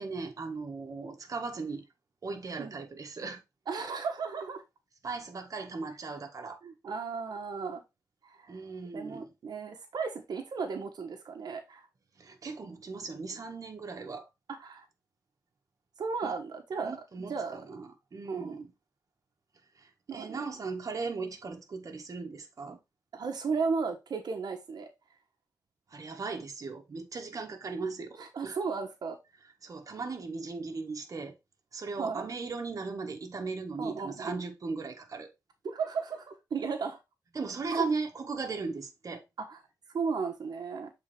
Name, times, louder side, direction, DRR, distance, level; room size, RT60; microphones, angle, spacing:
voice 1, 0.0-1.8 2.2-3.4 5.0-6.6 8.5-9.3 12.2-14.3 16.2-16.3 16.8-18.7 19.7-22.8 25.9-28.6 29.6-31.4 31.7-35.3 37.3-39.2, right 4 dB, 55° right, 1.5 m, -37 dB
voice 2, 3.7-4.6 6.6-7.8 8.2-8.5 8.9-11.9 14.5-14.9 16.0-17.0 17.3-17.6 18.2-18.6 20.1-20.4 23.1-24.9 28.2-29.2 32.0-32.3 33.8-34.3 35.6-37.0 37.7-37.8 39.5-39.6 39.9-40.9, right 5 dB, 85° right, 1.2 m, -35 dB
7.5 x 4.0 x 4.3 m
wide cardioid pair, 110°, 7 cm